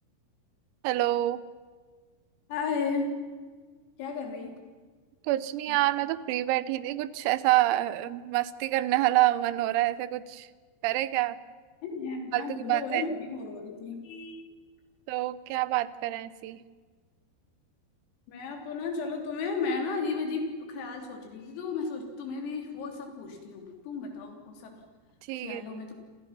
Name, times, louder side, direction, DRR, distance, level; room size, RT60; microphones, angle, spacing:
voice 1, 0.8-1.4 5.2-10.5 10.8-11.4 12.3-13.1 15.1-16.6 25.3-25.8, right 16 dB, 85° right, 16 dB, 3.6 m, -27 dB
voice 2, 2.5-3.2 4.0-4.5 5.7-5.8 11.8-14.4 18.3-24.8 25.3-25.9, left 4 dB, 80° left, 2 dB, 6.1 m, -34 dB
28.0 x 27.5 x 5.9 m, 1.5 s
omnidirectional pair, 6.0 m